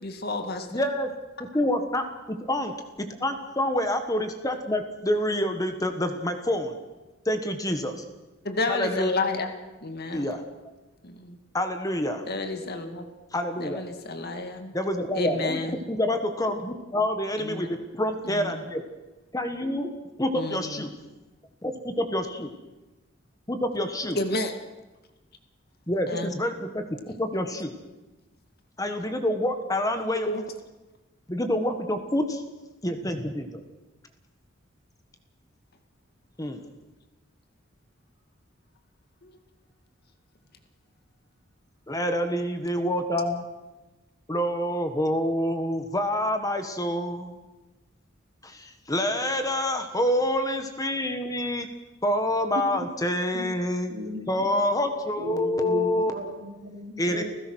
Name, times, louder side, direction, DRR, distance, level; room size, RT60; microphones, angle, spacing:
voice 1, 0.0-0.7 8.4-9.5 9.8-10.3 11.0-11.4 12.3-13.1 13.6-14.8 15.1-15.8 17.4-17.7 18.2-18.6 20.3-20.9 24.1-24.5 26.1-26.3 30.3-30.4 39.2-39.4, left 2 dB, 50° left, 6 dB, 2.1 m, -30 dB
voice 2, 0.7-1.1 1.5-2.1 2.5-2.7 3.2-6.8 7.2-7.9 8.7-9.1 10.1-10.4 11.5-12.2 13.3-13.8 14.7-15.6 15.9-18.8 19.3-19.9 20.2-20.9 21.6-22.5 23.5-24.2 25.9-26.8 27.2-27.7 28.8-30.3 31.3-32.4 32.8-33.6 36.4-36.7 41.9-43.4 44.3-47.3 48.4-51.7 52.0-53.9 54.3-56.1 57.0-57.2, left 1 dB, 20° left, 7 dB, 1.5 m, -27 dB
voice 3, 53.9-54.5 55.2-57.2, right 1 dB, 55° right, 2 dB, 3.9 m, -36 dB
30.0 x 16.0 x 6.3 m, 1.1 s
head